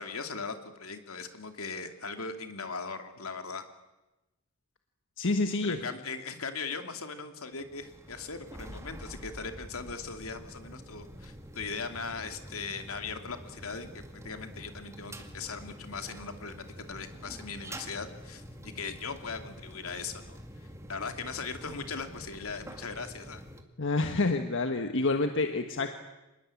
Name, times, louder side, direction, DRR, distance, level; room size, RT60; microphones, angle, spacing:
voice 1, 0.0-3.6 5.6-18.4 18.7-20.4 20.9-23.4, left 4 dB, 80° left, 7 dB, 2.6 m, -39 dB
voice 2, 5.2-5.8 23.8-26.0, left 3 dB, 60° left, 6 dB, 1.4 m, -28 dB
sound 1, 7.5-23.6, equal, 15° right, 2.2 m, -47 dB
26.5 x 20.5 x 8.5 m, 1.0 s
head